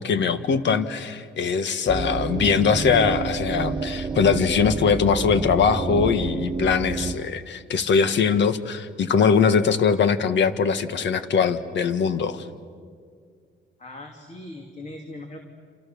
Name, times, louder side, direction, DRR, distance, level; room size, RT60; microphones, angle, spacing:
voice 1, 0.0-12.5, left 6 dB, 65° left, 11 dB, 1.6 m, -21 dB
sound 1, 1.9-7.1, right 4 dB, 25° right, 1.5 m, -28 dB
voice 2, 13.8-15.4, left 1 dB, 35° left, 3 dB, 2.9 m, -39 dB
29.0 x 28.0 x 7.1 m, 2.1 s
cardioid pair, 90°, 20 cm